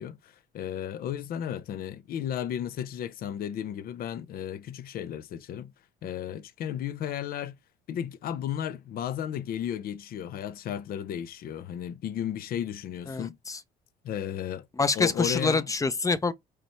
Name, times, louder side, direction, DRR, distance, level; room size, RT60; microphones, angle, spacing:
voice 1, 0.0-5.7 6.0-7.6 7.9-13.4 14.0-14.7 15.0-15.7, left 10 dB, 60° left, 0.7 m, -34 dB
voice 2, 13.1-13.6 14.8-16.3, left 4 dB, 20° left, 0.7 m, -26 dB
4.9 x 4.4 x 4.5 m
cardioid pair, 110°, 17 cm